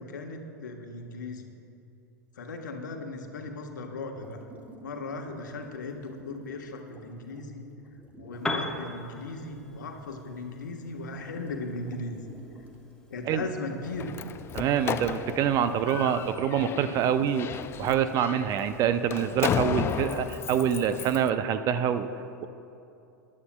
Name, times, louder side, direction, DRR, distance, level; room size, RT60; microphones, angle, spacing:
voice 1, 0.0-1.5 2.3-4.4 4.8-7.6 8.2-12.2 13.1-14.2 15.7-15.8, left 3 dB, 70° left, 2 dB, 1.3 m, -37 dB
sound 1, 4.2-8.7 10.8-10.9 11.1-13.3 13.6-13.7 14.1-14.2 14.8-17.5, right 2 dB, 15° right, 1.2 m, -50 dB
Piano, 8.3-16.1, left 2 dB, 5° left, 1.1 m, -41 dB
Slam, 13.8-21.3, left 8 dB, 25° left, 0.4 m, -34 dB
voice 2, 14.5-17.5 17.8-22.1, right 8 dB, 35° right, 11 dB, 0.6 m, -26 dB
21.0 x 11.0 x 2.3 m, 2.7 s
figure-of-eight pair, 90°, 10 cm